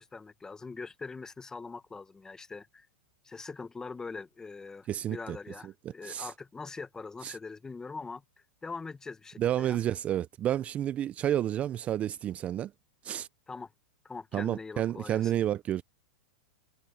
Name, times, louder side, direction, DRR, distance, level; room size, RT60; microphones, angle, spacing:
voice 1, 0.0-2.9 3.2-8.2 8.6-9.8 13.5-13.7 14.0-15.3, left 4 dB, 10° left, 0.8 m, -42 dB
voice 2, 4.9-5.4 5.6-5.7 6.0-6.3 7.2-7.4 9.4-12.7 13.0-13.3 14.3-15.8, right 11 dB, 20° right, 0.3 m, -30 dB
supercardioid pair, 145°, 6 cm